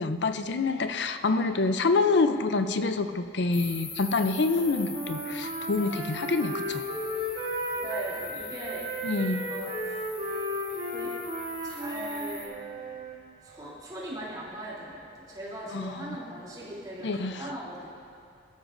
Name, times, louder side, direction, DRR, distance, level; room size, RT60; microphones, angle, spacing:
voice 1, 0.0-6.8 9.0-9.5 15.7-16.2 17.0-17.4, left 3 dB, 65° left, 9 dB, 0.5 m, -27 dB
sound 1, 3.5-12.5, left 3 dB, 35° left, 3.6 m, -43 dB
Wind instrument woodwind instrument, 4.5-8.3 8.6-13.1, equal, 45° right, 2.1 m, -34 dB
voice 2, 7.7-8.9 9.5-10.0 10.9-11.1 11.6-12.5 13.4-17.9, right 1 dB, 20° right, -7 dB, 3.1 m, -39 dB
21.0 x 13.0 x 2.6 m, 2.4 s
head